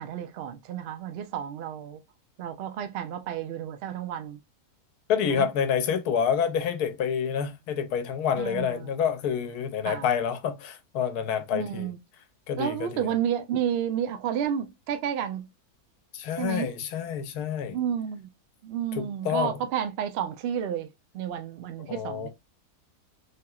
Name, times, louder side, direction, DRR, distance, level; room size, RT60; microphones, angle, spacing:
voice 1, 0.0-2.0 2.4-4.4 5.3-5.5 8.4-8.9 9.8-10.1 11.5-12.0 12.6-15.5 16.4-16.7 17.7-18.3 18.6-20.9 21.1-22.3, right 9 dB, 90° right, 0.5 m, -31 dB
voice 2, 5.1-11.9 12.5-13.1 16.1-17.8 19.0-19.6 21.9-22.3, left 7 dB, 80° left, 1.2 m, -28 dB
3.4 x 2.8 x 2.3 m
omnidirectional pair, 1.6 m